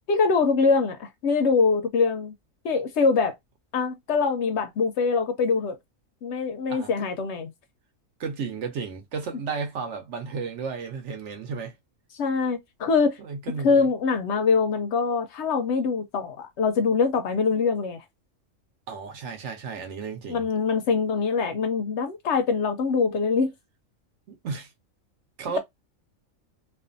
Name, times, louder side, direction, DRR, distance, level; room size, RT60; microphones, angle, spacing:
voice 1, 0.1-2.3 2.6-3.3 3.7-5.8 6.2-7.5 12.1-13.2 13.6-18.0 20.3-23.5, left 4 dB, 65° left, 0.8 m, -23 dB
voice 2, 6.7-7.1 8.2-11.7 13.2-13.9 18.9-20.5 24.3-24.7 25.4-25.6, right 5 dB, 65° right, 1.0 m, -33 dB
2.5 x 2.4 x 2.5 m
omnidirectional pair, 1.4 m